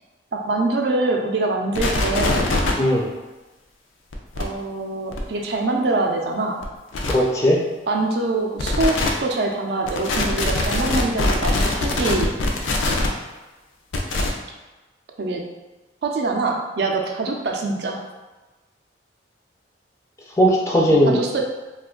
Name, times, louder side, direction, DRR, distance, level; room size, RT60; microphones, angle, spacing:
voice 1, 0.3-2.5 4.4-6.6 7.9-12.3 15.2-15.4 16.0-18.0 21.1-21.4, right 2 dB, 55° right, 1 dB, 0.4 m, -24 dB
sound 1, 1.7-2.7 4.1-4.4 5.1-5.2 6.6-6.7 6.9-7.1 8.6-9.1 9.9-13.1 13.9-14.3, left 2 dB, 90° left, 0.4 m, -22 dB
voice 2, 7.1-7.6 20.4-21.4, equal, 15° left, -3 dB, 0.4 m, -18 dB
2.5 x 2.3 x 3.6 m, 1.1 s
head